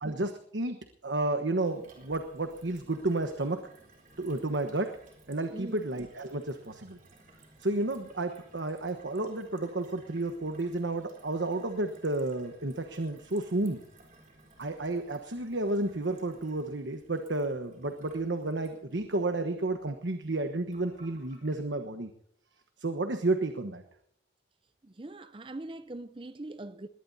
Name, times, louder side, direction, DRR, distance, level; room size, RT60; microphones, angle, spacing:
voice 1, 0.0-3.6 4.2-4.9 5.3-7.0 7.6-13.8 14.6-22.1 22.8-23.8, right 2 dB, 80° right, 1.2 m, -31 dB
Gurgling / Water tap faucet / Sink (filling or washing), 1.6-21.6, right 2 dB, 45° right, 4.1 m, -58 dB
voice 2, 5.5-5.8 24.8-26.9, right 2 dB, 30° right, 0.6 m, -42 dB
21.0 x 17.5 x 2.8 m
head